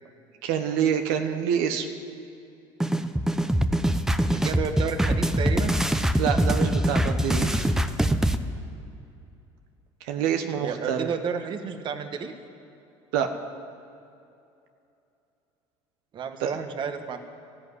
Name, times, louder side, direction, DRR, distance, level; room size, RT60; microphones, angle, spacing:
voice 1, 0.4-1.9 6.2-7.7 10.0-11.1 13.1-13.3 16.4-16.5, right 8 dB, 85° right, 6 dB, 1.2 m, -26 dB
sound 1, 2.8-8.4, right 1 dB, 5° right, 0.8 m, -23 dB
voice 2, 4.3-5.8 10.6-12.3 16.1-17.2, right 6 dB, 45° right, 7 dB, 1.4 m, -31 dB
14.0 x 10.5 x 9.8 m, 2.7 s
supercardioid pair, 105°, 11 cm